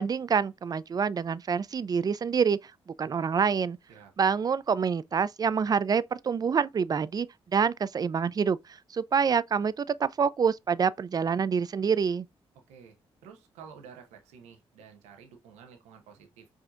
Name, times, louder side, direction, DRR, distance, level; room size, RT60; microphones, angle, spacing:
voice 1, 0.0-2.7 3.0-3.8 4.2-7.3 7.5-8.6 8.9-12.3, right 6 dB, 35° right, 0.3 m, -26 dB
voice 2, 13.2-16.5, right 6 dB, 85° right, 0.9 m, -51 dB
4.8 x 2.7 x 2.4 m
supercardioid pair, 50°, 11 cm